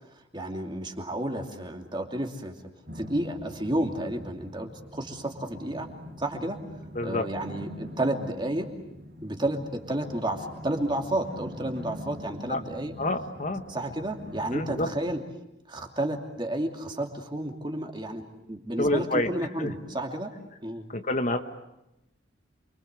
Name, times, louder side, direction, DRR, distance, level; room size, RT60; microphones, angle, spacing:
voice 1, 0.1-2.5 2.9-5.9 6.2-6.6 7.0-8.7 9.2-12.9 13.7-15.2 15.7-18.2 18.5-20.3 20.6-20.8, right 1 dB, 25° right, 4 dB, 2.7 m, -31 dB
sound 1, 2.8-15.2, left 1 dB, 50° right, 4.1 m, -44 dB
voice 2, 6.9-7.3 12.5-12.6 13.0-13.7 14.5-14.9 18.8-19.3 19.6-19.7 20.9-21.4, left 1 dB, 40° left, 7 dB, 1.3 m, -27 dB
29.0 x 24.0 x 8.2 m, 0.88 s
head